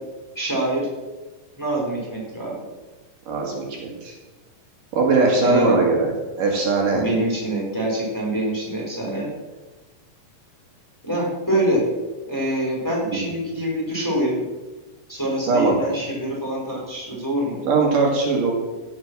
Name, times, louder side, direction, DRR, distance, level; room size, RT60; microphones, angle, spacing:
voice 1, 0.3-0.9 1.6-2.6 5.4-5.8 6.9-9.3 11.0-11.9 12.3-14.4 15.1-17.6, right 1 dB, 5° left, -5 dB, 4.2 m, -25 dB
voice 2, 3.3-4.2 4.9-7.0 13.1-13.2 15.5-15.8 17.7-18.5, right 3 dB, 65° right, 0 dB, 3.5 m, -20 dB
16.5 x 6.7 x 6.2 m, 1.2 s
omnidirectional pair, 4.1 m